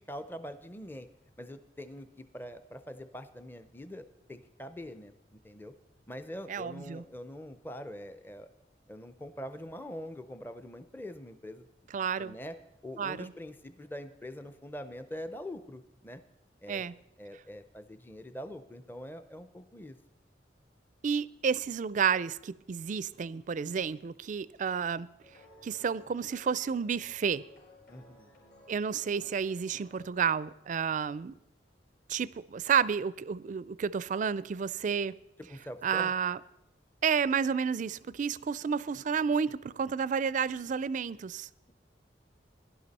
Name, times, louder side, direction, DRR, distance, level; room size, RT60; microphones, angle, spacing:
voice 1, 0.1-1.1 1.4-5.1 5.4-5.7 6.1-8.5 8.9-11.7 12.2-12.6 12.8-16.2 16.6-16.9 17.2-20.0 27.9-28.3 35.5-36.1, equal, 10° left, 0.6 m, -44 dB
voice 2, 6.5-7.0 11.9-12.4 13.0-13.3 16.7-16.9 21.0-25.1 25.6-27.4 28.7-31.4 32.1-35.1 35.8-36.4 37.0-41.5, right 6 dB, 45° right, 0.4 m, -31 dB
sound 1, 25.2-30.4, left 2 dB, 60° left, 5.1 m, -58 dB
16.5 x 11.0 x 4.1 m
head